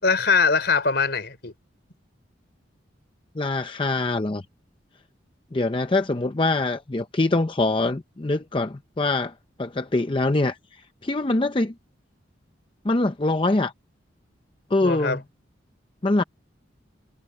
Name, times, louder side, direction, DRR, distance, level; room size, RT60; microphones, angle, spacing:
voice 1, 0.0-1.5 14.8-15.2, left 5 dB, 60° left, 4.9 m, -22 dB
voice 2, 3.4-4.4 5.5-9.3 9.6-10.6 11.0-11.7 12.8-13.7 14.7-15.2 16.0-16.2, left 2 dB, 25° left, 0.6 m, -23 dB
head